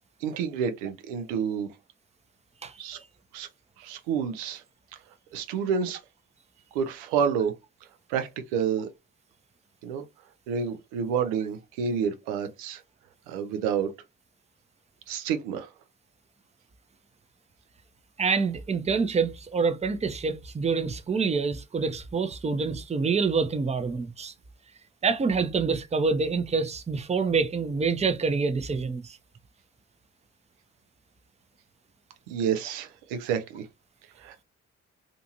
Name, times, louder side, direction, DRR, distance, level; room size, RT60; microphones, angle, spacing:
voice 1, 0.2-1.7 2.8-3.0 3.3-3.5 3.8-4.6 5.3-6.0 6.7-7.5 8.1-8.9 9.8-10.0 10.5-12.8 13.3-13.9 15.1-15.7 32.3-33.7 34.2-34.4, right 7 dB, 85° right, 0.5 m, -29 dB
voice 2, 18.2-24.3 25.0-29.2, right 4 dB, 20° right, 0.5 m, -26 dB
2.5 x 2.5 x 2.7 m
hypercardioid pair, 40°, 37 cm